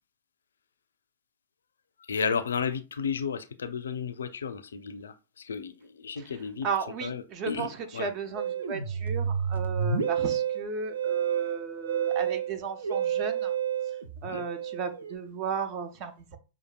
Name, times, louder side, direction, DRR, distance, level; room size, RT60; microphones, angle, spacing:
voice 1, 2.1-6.7 7.0-8.1 14.2-14.4, left 6 dB, 65° left, 0.5 m, -33 dB
voice 2, 6.6-13.5 14.2-16.4, right 5 dB, 35° right, 0.8 m, -35 dB
Musical instrument, 8.4-15.1, right 8 dB, 65° right, 0.7 m, -30 dB
6.4 x 2.5 x 2.2 m
figure-of-eight pair, 100°, 0 cm